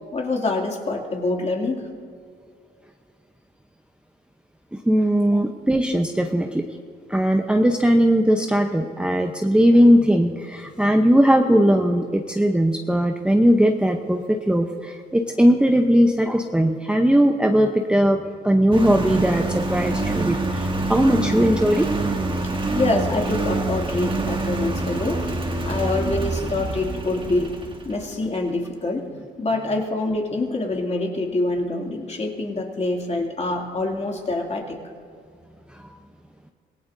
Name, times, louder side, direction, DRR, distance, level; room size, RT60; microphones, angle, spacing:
voice 1, 0.1-1.9 5.3-5.4 22.7-25.2 25.6-27.5 27.8-29.1 29.4-34.8, left 2 dB, 35° left, 1 dB, 2.6 m, -25 dB
voice 2, 4.7-6.6 7.1-22.2 35.7-35.9, equal, 5° right, 4 dB, 0.8 m, -19 dB
Engine, 18.7-28.1, right 2 dB, 25° right, 1.6 m, -26 dB
26.0 x 17.0 x 2.7 m, 2.2 s
cardioid pair, 90°, 20 cm